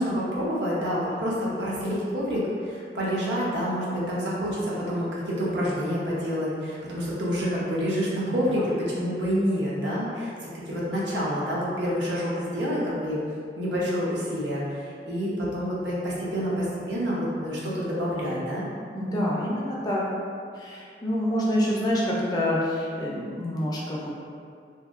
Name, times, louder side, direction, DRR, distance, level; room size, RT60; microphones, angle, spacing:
voice 1, 0.0-13.2 13.6-18.7, equal, 70° right, -6 dB, 0.7 m, -28 dB
voice 2, 18.9-20.0 20.5-24.1, left 1 dB, 20° left, -5 dB, 0.3 m, -27 dB
2.7 x 2.6 x 2.4 m, 2.3 s
head